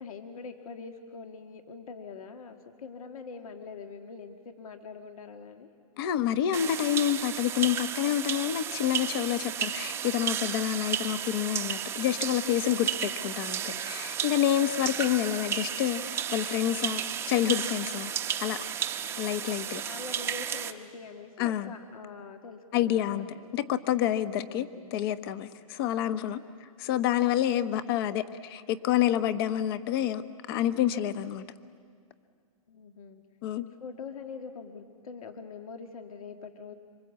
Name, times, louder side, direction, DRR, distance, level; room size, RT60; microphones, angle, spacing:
voice 1, 0.0-5.7 12.4-13.1 13.4-13.9 14.5-15.0 19.0-19.3 19.8-23.6 24.4-25.0 32.7-33.2 33.6-36.7, left 5 dB, 70° left, 6 dB, 1.8 m, -44 dB
voice 2, 6.0-17.0 17.3-18.1 18.4-18.6 19.2-19.8 21.4-21.7 22.7-26.4 26.8-30.2 30.5-31.4 33.4-33.6, left 11 dB, 40° left, 12 dB, 1.1 m, -28 dB
sound 1, 6.5-20.7, right 9 dB, 15° right, 0.8 m, -33 dB
26.5 x 25.0 x 8.3 m, 2.1 s
hypercardioid pair, 150°, 19 cm